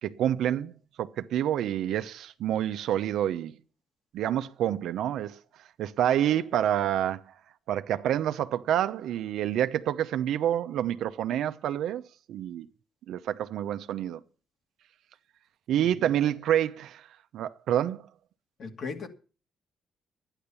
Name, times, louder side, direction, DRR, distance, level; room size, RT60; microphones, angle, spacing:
voice 1, 0.0-0.7 1.0-3.5 4.1-5.4 5.8-7.2 7.7-12.0 12.3-12.7 13.1-14.2 15.7-17.1 17.3-18.0, right 11 dB, 80° right, 0.8 m, -28 dB
voice 2, 15.8-16.1 18.6-19.1, left 5 dB, 60° left, 2.5 m, -38 dB
12.0 x 10.0 x 7.0 m
cardioid pair, 90°, 0 cm